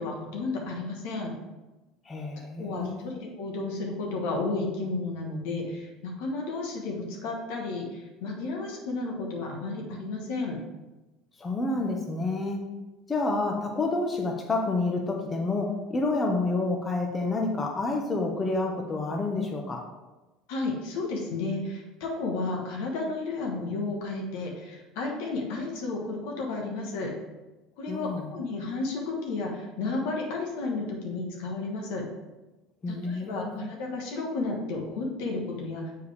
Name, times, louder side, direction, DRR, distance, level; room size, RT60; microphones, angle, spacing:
voice 1, 0.0-1.3 2.6-10.6 20.5-27.1 27.8-32.0 32.9-35.8, left 3 dB, 70° left, 0 dB, 1.3 m, -32 dB
voice 2, 2.0-3.1 11.4-12.6 13.1-19.8 27.9-28.3 32.8-33.6, left 2 dB, 25° left, 1 dB, 1.0 m, -29 dB
6.9 x 4.6 x 3.4 m, 1.1 s
hypercardioid pair, 80°, 0 cm